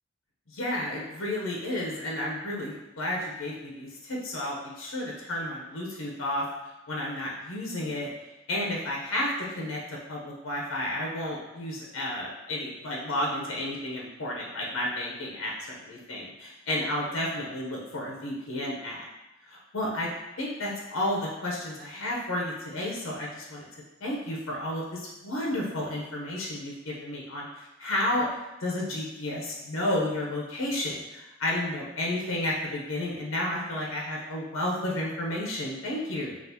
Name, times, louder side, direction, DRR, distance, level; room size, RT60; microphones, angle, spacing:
voice 1, 0.5-6.4 6.9-8.1 8.5-9.8 10.1-19.1 19.4-20.1 20.4-28.3 28.6-36.4, left 1 dB, 70° left, -3 dB, 0.8 m, -32 dB
5.7 x 2.4 x 2.8 m, 1.0 s
head